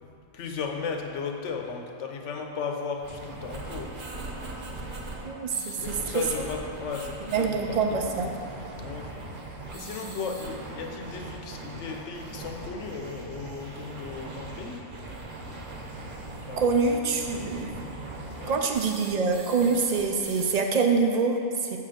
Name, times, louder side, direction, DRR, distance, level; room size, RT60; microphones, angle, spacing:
voice 1, 0.0-3.9 5.8-8.2 8.8-9.1 9.7-14.8 16.5-16.7 18.3-18.7, left 5 dB, 70° left, 2 dB, 1.0 m, -35 dB
sound 1, 3.0-20.6, right 2 dB, 45° right, 1.0 m, -40 dB
voice 2, 5.2-6.5 7.3-8.3 16.6-17.8 18.5-21.8, right 4 dB, 65° right, 3 dB, 0.4 m, -25 dB
7.0 x 3.8 x 6.5 m, 2.5 s
omnidirectional pair, 1.3 m